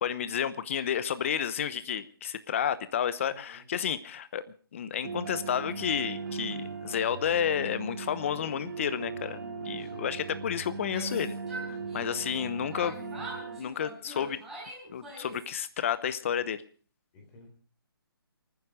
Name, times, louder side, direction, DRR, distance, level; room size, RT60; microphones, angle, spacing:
voice 1, 0.0-4.4 4.7-11.4 11.9-13.3 13.6-14.4 14.9-16.6, left 8 dB, 35° left, 15 dB, 0.9 m, -31 dB
voice 2, 3.3-3.6 9.8-10.2 11.8-12.0 17.1-17.5, left 1 dB, 15° left, 1 dB, 4.0 m, -53 dB
sound 1, 5.0-13.6, right 4 dB, 50° right, 3.2 m, -38 dB
Yell, 10.7-12.4 12.7-15.5, right 1 dB, ahead, 4.5 m, -43 dB
28.0 x 9.7 x 5.0 m, 0.42 s
hypercardioid pair, 165°, 13 cm